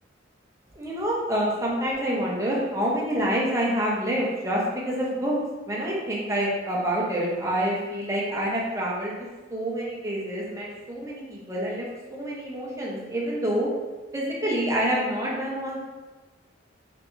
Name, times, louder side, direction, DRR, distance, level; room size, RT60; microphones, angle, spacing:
voice 1, 0.7-5.4 5.7-9.1 9.5-13.7 14.1-15.8, equal, 15° right, -4 dB, 0.9 m, -27 dB
3.7 x 3.4 x 3.1 m, 1.2 s
head